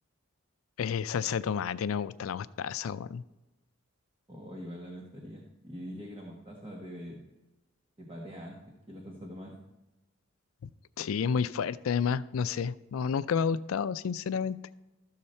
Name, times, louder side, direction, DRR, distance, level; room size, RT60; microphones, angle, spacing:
voice 1, 0.8-3.2 11.0-14.6, left 6 dB, 85° left, 16 dB, 0.4 m, -30 dB
voice 2, 4.3-7.2 8.0-8.6 8.9-9.6, equal, 25° right, -1 dB, 1.2 m, -43 dB
13.0 x 6.7 x 4.3 m, 1.0 s
head